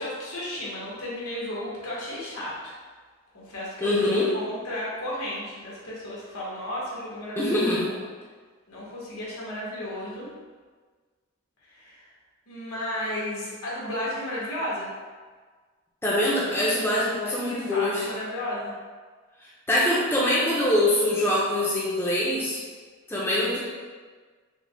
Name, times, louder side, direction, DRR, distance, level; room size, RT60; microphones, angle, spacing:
voice 1, 0.0-2.8 3.3-7.9 8.7-10.3 11.7-12.0 12.5-14.9 17.0-18.7, left 1 dB, 85° left, -7 dB, 1.4 m, -34 dB
voice 2, 3.8-4.3 7.4-7.8 16.0-18.1 19.7-22.6 23.1-23.6, left 1 dB, 10° left, -6 dB, 0.6 m, -24 dB
5.0 x 2.3 x 3.4 m, 1.5 s
head